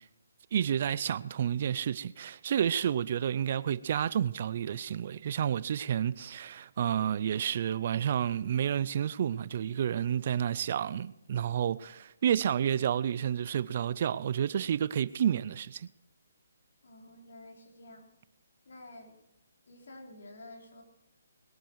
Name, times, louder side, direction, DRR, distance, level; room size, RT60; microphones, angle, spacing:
voice 1, 0.5-15.9, right 9 dB, 40° right, 0.4 m, -30 dB
voice 2, 16.8-18.1 18.7-19.2 19.7-20.8, left 1 dB, 65° left, 3.8 m, -50 dB
21.0 x 9.2 x 4.6 m
hypercardioid pair, 165°, 0 cm